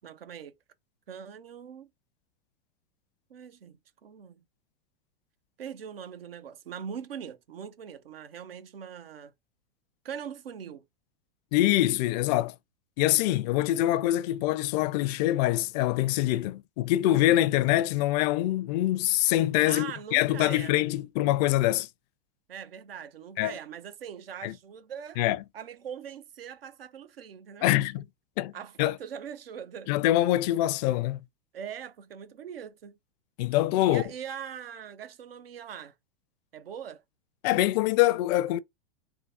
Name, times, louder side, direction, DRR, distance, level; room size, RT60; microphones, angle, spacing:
voice 1, 0.0-0.6 1.1-1.9 3.3-4.4 5.6-9.3 10.0-10.8 19.7-20.7 22.5-25.2 25.5-27.7 28.5-29.9 31.5-33.0 33.9-35.9 36.5-37.0, right 8 dB, 80° right, 0.8 m, -41 dB
voice 2, 11.5-12.5 13.0-21.9 23.4-23.5 24.4-24.5 25.2-25.4 27.6-28.0 28.4-28.5 28.8-29.0 29.9-31.2 33.4-34.0 37.4-38.6, left 15 dB, 45° left, 0.5 m, -24 dB
3.7 x 2.7 x 4.1 m
hypercardioid pair, 100°, 29 cm